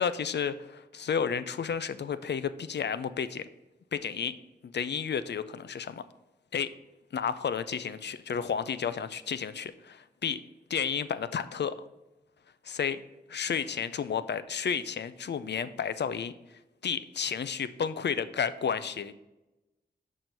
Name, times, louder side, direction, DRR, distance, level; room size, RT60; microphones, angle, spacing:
voice 1, 0.0-3.5 3.9-4.4 4.6-6.0 6.5-6.7 7.1-10.4 10.7-11.8 12.6-13.0 13.3-16.3 16.8-19.1, left 7 dB, 75° left, 13 dB, 0.5 m, -32 dB
6.2 x 4.5 x 5.2 m, 1.0 s
cardioid pair, 55°, 18 cm